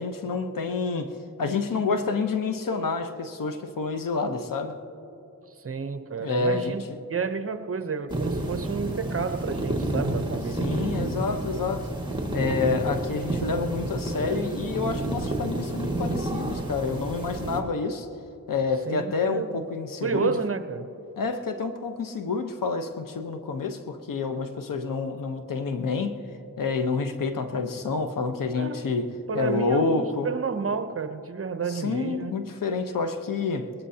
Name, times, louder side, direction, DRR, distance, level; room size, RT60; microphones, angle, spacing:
voice 1, 0.0-4.8 6.2-7.0 10.6-11.9 12.3-18.1 18.5-20.4 21.2-26.2 26.6-30.3 31.7-33.7, left 4 dB, 65° left, 1.1 m, -28 dB
voice 2, 5.6-6.8 7.1-10.9 18.9-19.6 20.0-20.9 28.6-28.8 29.3-32.3, right 5 dB, 40° right, 0.8 m, -30 dB
sound 1, 8.1-17.6, right 1 dB, 15° right, 2.0 m, -30 dB
21.0 x 20.0 x 2.9 m
cardioid pair, 65°, 35 cm